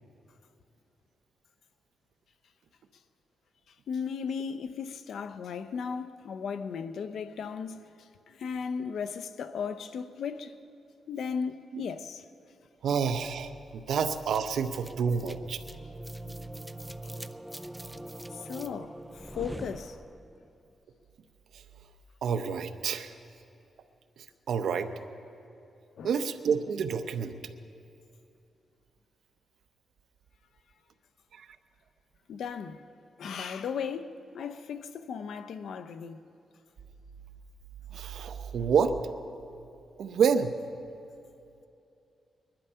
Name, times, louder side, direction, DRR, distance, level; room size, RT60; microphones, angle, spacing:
voice 1, 3.7-10.6 11.1-12.3 18.3-20.0 26.0-26.1 32.3-32.9 33.2-36.2 38.5-38.6, left 6 dB, 75° left, 0.7 m, -36 dB
voice 2, 12.8-15.6 21.5-21.6 22.2-23.2 24.5-24.9 26.0-27.3 31.3-31.5 37.9-39.1 40.0-40.5, right 6 dB, 75° right, 0.8 m, -28 dB
sound 1, 14.1-20.4, right 1 dB, 5° right, 0.5 m, -43 dB
21.5 x 11.5 x 5.7 m
cardioid pair, 115°, 0 cm